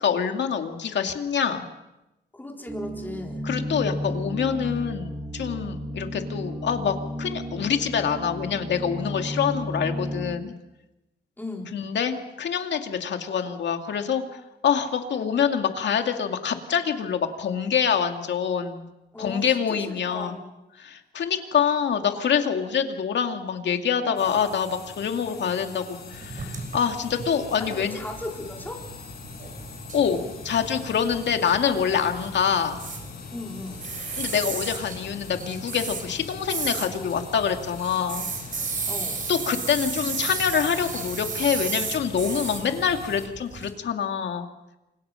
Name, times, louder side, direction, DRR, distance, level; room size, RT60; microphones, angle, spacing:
voice 1, 0.0-1.6 3.4-10.6 11.7-18.9 19.2-20.4 20.8-28.0 29.9-32.8 34.2-38.3 39.3-44.5, left 7 dB, 80° left, 5 dB, 2.4 m, -26 dB
voice 2, 2.3-3.4 11.4-11.8 19.1-20.5 27.6-28.8 33.3-33.9 38.9-39.2, left 2 dB, 10° left, 1 dB, 4.2 m, -37 dB
sound 1, 2.7-10.4, equal, 15° right, 2.8 m, -33 dB
sound 2, 24.2-43.3, left 6 dB, 60° left, 5.1 m, -42 dB
sound 3, 26.1-43.7, right 4 dB, 50° right, 4.3 m, -35 dB
29.0 x 25.5 x 5.8 m, 0.96 s
wide cardioid pair, 130°, 18 cm